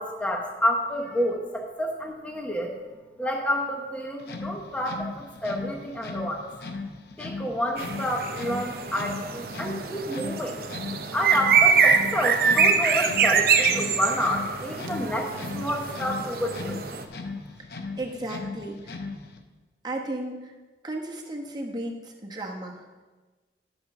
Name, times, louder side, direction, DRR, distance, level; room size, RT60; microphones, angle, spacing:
voice 1, 0.0-2.8 3.2-6.5 7.2-10.6 11.1-16.9, equal, 5° left, 1 dB, 0.9 m, -29 dB
sound 1, 4.2-19.4, left 3 dB, 60° left, 0.7 m, -38 dB
sound 2, 7.8-17.0, right 6 dB, 55° right, 0.7 m, -24 dB
voice 2, 18.0-19.0 19.8-20.5 20.8-23.0, right 1 dB, 25° right, 1 dB, 1.1 m, -34 dB
11.0 x 5.4 x 6.0 m, 1.3 s
head